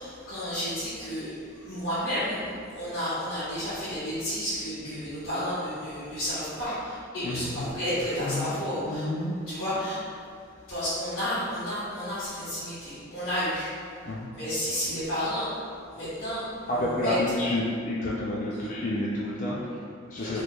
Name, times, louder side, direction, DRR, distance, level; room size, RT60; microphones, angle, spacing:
voice 1, 0.0-2.4 2.7-9.1 9.5-10.0 10.7-15.6 15.9-17.1 20.2-20.4, equal, 80° left, -15 dB, 1.3 m, -32 dB
voice 2, 7.2-7.7 8.2-9.3 14.1-14.3 16.7-20.4, left 1 dB, 40° left, -5 dB, 0.4 m, -30 dB
4.2 x 3.1 x 2.3 m, 2.3 s
head